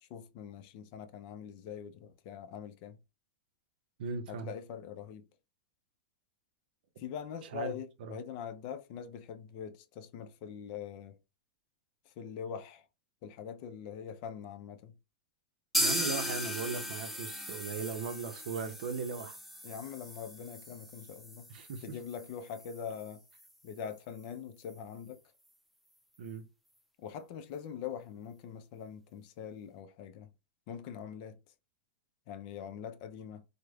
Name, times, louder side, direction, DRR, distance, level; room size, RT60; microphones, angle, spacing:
voice 1, 0.0-3.0 4.3-5.3 7.0-11.2 12.1-12.9 13.2-15.0 19.6-21.5 21.8-23.2 23.6-25.2 27.0-30.3 30.7-31.4 32.3-33.4, left 8 dB, 50° left, 0.4 m, -43 dB
voice 2, 4.0-4.5 7.5-7.7 8.0-8.1 15.8-19.4 21.5-22.0 26.2-26.5, right 5 dB, 70° right, 0.5 m, -38 dB
sound 1, 15.7-23.5 23.8-23.9 24.2-24.3 24.7-24.8, equal, ahead, 0.5 m, -38 dB
3.1 x 2.0 x 2.3 m
hypercardioid pair, 115°, 5 cm